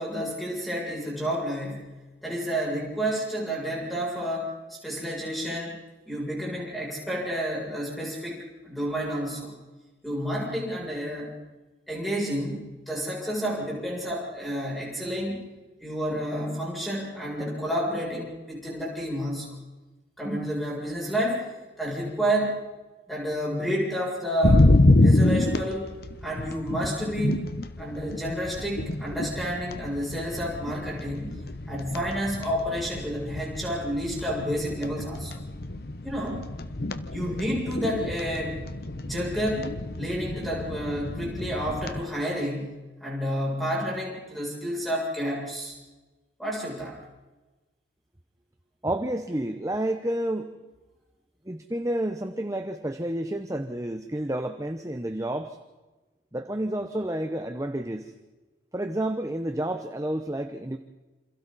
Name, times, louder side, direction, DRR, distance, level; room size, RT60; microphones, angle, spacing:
voice 1, 0.0-1.9 2.2-5.8 6.1-9.5 10.0-11.3 11.9-15.4 15.8-19.6 20.2-21.5 21.8-22.6 23.1-24.6 25.0-25.9 26.2-27.5 27.8-31.4 31.7-35.4 36.0-36.4 37.1-38.6 39.0-45.8 46.4-47.0, equal, ahead, -4 dB, 7.4 m, -30 dB
sound 1, 24.4-42.0, left 2 dB, 55° left, 1.0 m, -27 dB
voice 2, 48.8-50.5 51.5-55.6 56.3-58.1 58.7-60.8, right 1 dB, 15° right, 7 dB, 0.9 m, -30 dB
28.0 x 27.0 x 4.2 m, 1.2 s
head